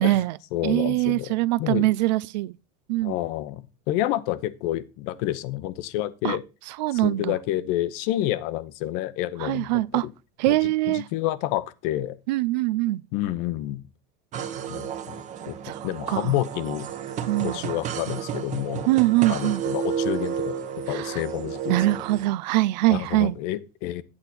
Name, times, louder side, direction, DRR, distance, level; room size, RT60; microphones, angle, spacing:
voice 1, 0.0-0.4 0.6-2.5 2.9-3.2 6.2-6.4 6.8-7.3 9.4-10.1 10.4-11.1 12.3-13.0 15.6-15.8 16.1-16.4 17.3-17.6 18.9-19.6 20.9-21.2 21.7-23.4, right 17 dB, 90° right, 0.5 m, -23 dB
voice 2, 0.5-1.9 3.0-6.4 6.9-10.1 10.5-12.2 13.1-13.8 14.7-15.2 15.5-15.6 15.8-16.9 17.4-18.9 19.3-20.5 20.9-22.0 22.9-24.0, left 14 dB, 60° left, 0.9 m, -29 dB
sound 1, 14.3-22.3, right 8 dB, 35° right, 1.0 m, -32 dB
8.7 x 7.9 x 4.3 m
supercardioid pair, 145°, 21 cm